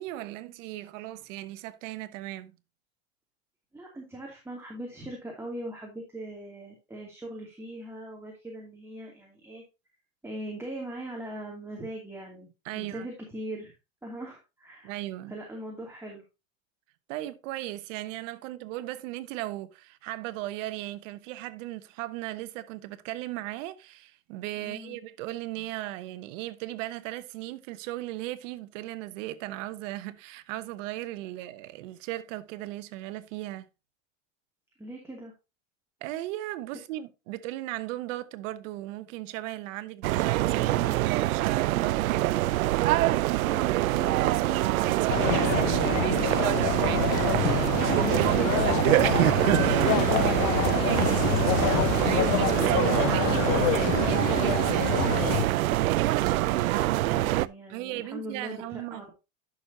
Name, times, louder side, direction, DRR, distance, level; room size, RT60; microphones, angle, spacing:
voice 1, 0.0-2.6 12.6-13.1 14.8-15.4 17.1-33.7 36.0-40.8 41.1-42.4 52.0-55.6 57.7-59.0, right 16 dB, 65° right, 1.1 m, -37 dB
voice 2, 3.7-9.6 10.2-12.5 12.7-13.7 14.0-15.0 15.3-16.2 24.6-25.0 34.8-35.3 53.0-54.0 57.0-59.1, right 1 dB, 5° right, 2.7 m, -41 dB
sound 1, 40.0-57.5, right 16 dB, 85° right, 0.5 m, -25 dB
sound 2, 45.1-55.5, left 16 dB, 65° left, 0.7 m, -28 dB
11.0 x 6.4 x 2.8 m
hypercardioid pair, 105°, 41 cm